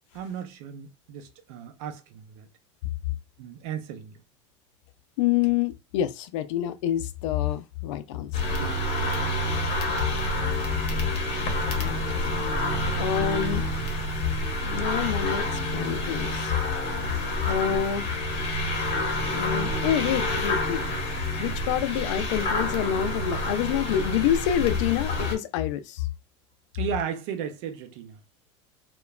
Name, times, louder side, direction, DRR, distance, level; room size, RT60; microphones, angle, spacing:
voice 1, 0.1-2.5 3.4-4.2 8.6-9.2 26.7-28.2, right 8 dB, 65° right, 0.6 m, -35 dB
voice 2, 5.2-8.5 11.8-12.5 13.0-13.7 14.6-16.5 17.4-18.1 19.3-20.8 21.4-26.1, left 10 dB, 75° left, 0.4 m, -27 dB
sound 1, 8.3-25.3, left 1 dB, 40° left, 0.8 m, -28 dB
2.9 x 2.2 x 2.3 m
supercardioid pair, 135°, 16 cm